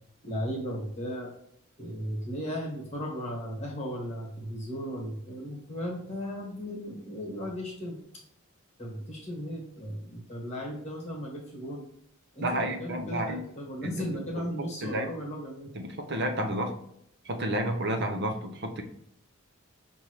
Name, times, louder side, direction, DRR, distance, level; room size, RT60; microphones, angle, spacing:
voice 1, 0.2-1.3 1.8-8.2 8.8-11.8 12.3-15.7, equal, 35° left, -1 dB, 1.4 m, -36 dB
voice 2, 12.4-13.4 13.8-13.9 14.8-15.1 15.7-16.7 17.2-18.8, right 1 dB, 55° right, 5 dB, 0.8 m, -30 dB
5.5 x 2.7 x 3.1 m, 0.72 s
head